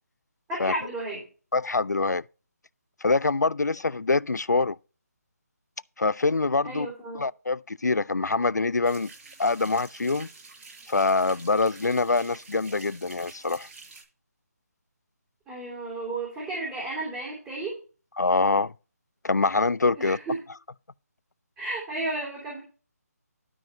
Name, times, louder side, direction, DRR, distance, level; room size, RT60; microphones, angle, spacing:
voice 1, 0.5-1.2 6.6-7.2 15.5-17.7 20.0-20.4 21.6-22.6, right 2 dB, 10° right, 3.1 m, -33 dB
voice 2, 1.5-2.2 3.0-4.8 6.0-6.9 7.1-9.1 9.4-10.3 10.9-13.7 18.2-18.7 19.2-20.2, left 3 dB, 90° left, 0.4 m, -24 dB
sound 1, 8.8-14.0, right 3 dB, 45° right, 5.5 m, -48 dB
12.5 x 4.7 x 5.4 m
figure-of-eight pair, 150°, 9 cm